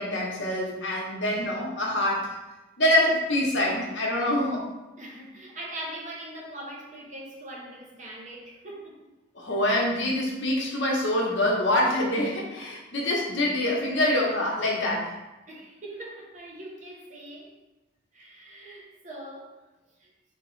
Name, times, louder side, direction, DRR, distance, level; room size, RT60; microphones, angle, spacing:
voice 1, 0.0-2.3 2.8-4.6 9.3-15.2, left 1 dB, 70° left, 0.9 m, -25 dB
voice 2, 5.0-9.1 13.0-13.1 15.5-17.6 18.1-19.6 20.0-20.1, right 1 dB, 40° right, 0.7 m, -41 dB
3.4 x 2.9 x 3.1 m
head